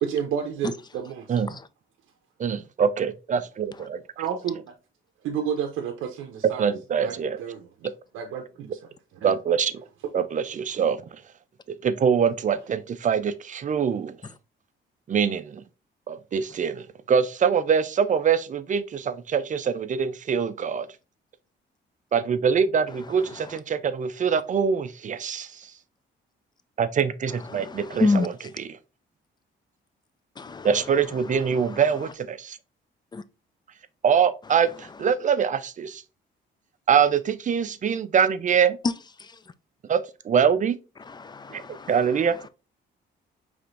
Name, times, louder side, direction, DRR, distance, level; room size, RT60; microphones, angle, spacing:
voice 1, 0.0-1.3 4.2-4.7 5.2-6.7 7.0-7.7 8.1-8.8 9.2-9.3, right 8 dB, 85° right, 0.6 m, -30 dB
voice 2, 2.4-4.0 6.6-7.4 7.8-7.9 9.2-9.8 10.1-11.2 11.7-14.2 15.1-15.6 16.1-20.9 22.1-25.7 26.8-28.8 30.6-32.6 34.0-36.0 36.9-38.8 39.9-40.8 41.5-42.4, right 7 dB, 40° right, 0.5 m, -24 dB
voice 3, 27.5-28.3 30.4-30.7 33.1-33.2 41.1-41.9, left 3 dB, 20° left, 0.4 m, -27 dB
4.9 x 3.4 x 2.5 m
cardioid pair, 90°, 20 cm